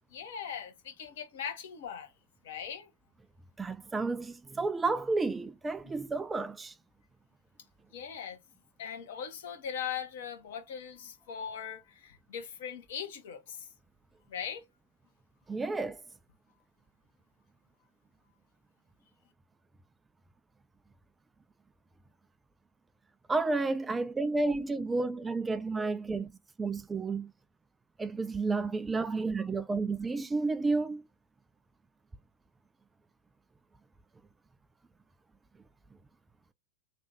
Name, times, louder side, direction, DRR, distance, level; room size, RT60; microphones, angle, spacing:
voice 1, 0.1-2.1 2.4-2.9 7.9-8.4 8.8-13.7 14.3-14.6, left 8 dB, 60° left, 1.2 m, -40 dB
voice 2, 3.6-6.7 15.5-16.0 23.3-26.3 26.6-27.3 28.0-31.0, right 3 dB, 15° right, 0.3 m, -31 dB
3.3 x 2.6 x 3.3 m
figure-of-eight pair, 95°, 0 cm